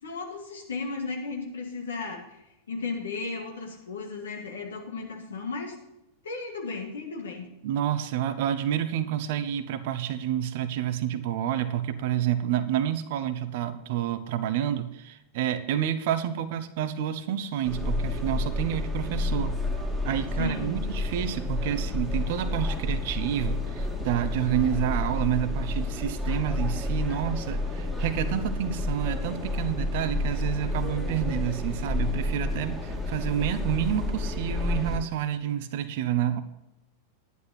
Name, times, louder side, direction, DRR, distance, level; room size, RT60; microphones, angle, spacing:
voice 1, 0.0-2.2 2.7-5.7 6.2-7.5 20.4-20.8, left 4 dB, 65° left, 1 dB, 2.4 m, -35 dB
voice 2, 7.6-19.6 20.0-36.4, right 10 dB, 50° right, 11 dB, 0.9 m, -29 dB
sound 1, 17.6-35.0, left 2 dB, ahead, 2.1 m, -30 dB
11.0 x 10.5 x 4.2 m, 0.89 s
figure-of-eight pair, 90°, 0 cm